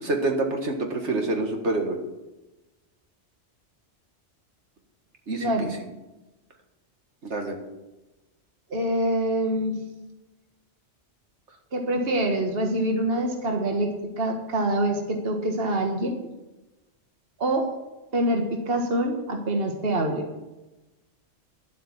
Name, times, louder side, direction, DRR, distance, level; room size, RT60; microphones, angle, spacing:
voice 1, 0.0-2.0 5.3-5.7 7.2-7.6, right 2 dB, 70° right, 3 dB, 2.0 m, -27 dB
voice 2, 5.4-5.8 8.7-9.8 11.7-16.2 17.4-17.7 18.1-20.3, right 1 dB, 55° right, 3 dB, 1.7 m, -25 dB
12.0 x 8.0 x 7.4 m, 1.0 s
omnidirectional pair, 1.2 m